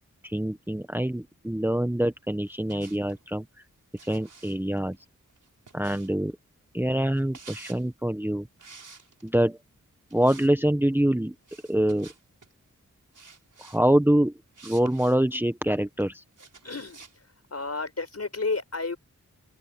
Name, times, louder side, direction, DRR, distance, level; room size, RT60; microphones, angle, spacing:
voice 1, 0.2-3.5 4.0-5.0 5.7-6.3 6.7-8.5 9.2-9.6 10.1-11.3 11.7-12.1 13.6-14.3 14.6-16.2, right 1 dB, 5° right, 1.2 m, -25 dB
Footsteps Tile Male Sneakers Scuffs, 2.5-3.2 4.0-6.3 7.1-7.9 8.6-9.4 10.1-10.5 10.8-10.9 11.5-12.5 13.1-13.8 14.5-15.4 16.4-17.2, right 4 dB, 70° right, 5.4 m, -50 dB
voice 2, 16.6-17.0 17.5-19.0, left 3 dB, 50° left, 5.9 m, -31 dB
open air
cardioid pair, 40°, 32 cm